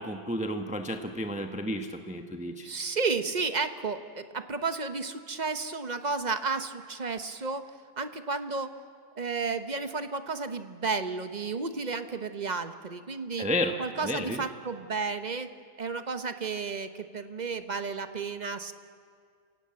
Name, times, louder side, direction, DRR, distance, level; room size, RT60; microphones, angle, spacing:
voice 1, 0.0-2.7 13.4-13.8 14.0-14.4, left 1 dB, 5° right, 5 dB, 0.9 m, -32 dB
voice 2, 2.4-7.7 8.0-8.7 9.2-13.5 13.8-15.5 15.8-18.7, right 4 dB, 35° right, 9 dB, 0.9 m, -32 dB
28.5 x 16.5 x 8.7 m, 2.1 s
omnidirectional pair, 1.6 m